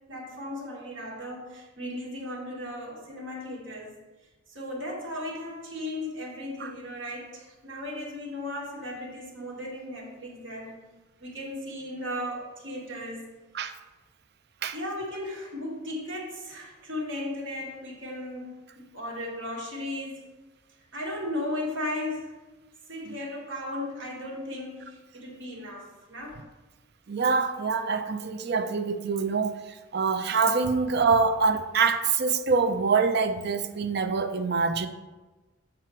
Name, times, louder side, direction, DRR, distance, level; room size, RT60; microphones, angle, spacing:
voice 1, 0.1-4.0 4.5-10.8 11.2-13.3 14.7-20.2 20.9-22.4 22.9-26.4, left 1 dB, 75° right, 2.0 m, -36 dB
voice 2, 27.1-34.9, right 4 dB, 60° right, 0.6 m, -25 dB
7.5 x 4.9 x 4.5 m
head